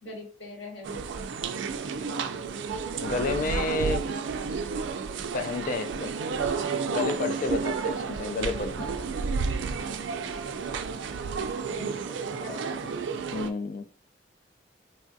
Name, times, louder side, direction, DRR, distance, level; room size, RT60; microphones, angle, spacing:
voice 1, 0.0-1.0 11.6-12.9, left 2 dB, 90° left, 1.5 m, -43 dB
sound 1, 0.8-13.5, right 5 dB, 80° right, 0.3 m, -31 dB
voice 2, 3.0-4.0 5.3-6.1 6.9-8.9 13.3-13.9, left 3 dB, 45° left, 0.3 m, -30 dB
3.3 x 2.3 x 2.6 m
head